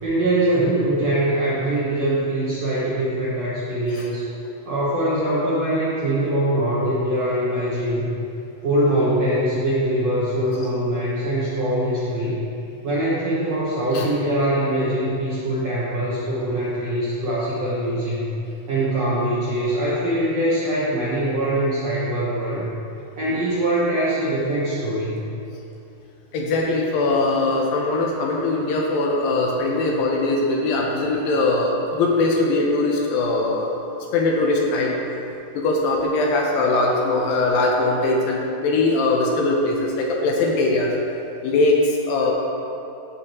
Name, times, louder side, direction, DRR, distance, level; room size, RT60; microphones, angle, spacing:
voice 1, 0.0-4.3 4.6-8.1 8.6-12.4 12.8-18.3 18.7-22.7 23.2-25.2, right 1 dB, 70° right, -9 dB, 1.5 m, -23 dB
voice 2, 26.3-33.7 34.1-35.0 35.6-40.9 41.4-42.3, left 2 dB, 75° left, -1 dB, 2.3 m, -21 dB
14.5 x 5.2 x 3.0 m, 2.8 s
omnidirectional pair, 4.5 m